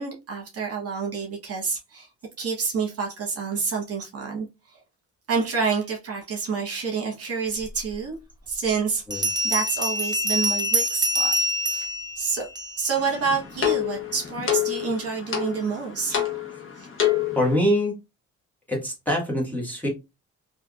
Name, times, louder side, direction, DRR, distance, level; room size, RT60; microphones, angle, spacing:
voice 1, 0.0-2.1 2.4-4.5 5.3-8.2 8.5-11.3 11.7-11.9 12.2-12.5 12.8-16.3 16.8-16.9, right 5 dB, 50° right, 1.1 m, -28 dB
Bell, 7.9-8.0 9.1-13.0, equal, 15° right, 0.5 m, -25 dB
sound 1, 13.0-17.6, left 11 dB, 45° left, 1.1 m, -28 dB
voice 2, 17.3-17.9 18.7-19.9, equal, 5° left, 1.6 m, -24 dB
3.4 x 2.6 x 2.4 m
cardioid pair, 90°, 30 cm